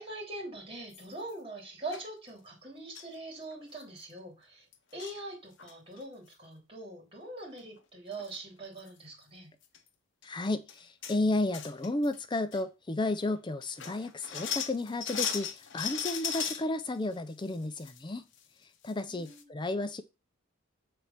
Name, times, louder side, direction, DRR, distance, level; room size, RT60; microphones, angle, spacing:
voice 1, 0.0-4.6 4.9-9.5 19.0-19.5, right 2 dB, 25° right, 3.4 m, -43 dB
sound 1, 0.9-1.3 1.9-2.0 2.9-3.1 3.5-3.6 3.8-4.0 4.7-5.2 5.6-6.0 7.8-7.9 8.1-8.4 8.8-8.9 9.6-9.8 10.2-10.3 10.7-11.2 11.5-12.2 12.5-12.6 13.2-13.3 13.6-16.6 17.1-18.0 18.3-18.4 18.9-19.0 19.2-19.4, left 7 dB, 55° left, 0.9 m, -37 dB
voice 2, 10.2-18.2 18.8-20.0, left 2 dB, 20° left, 0.4 m, -32 dB
6.9 x 4.2 x 5.8 m
head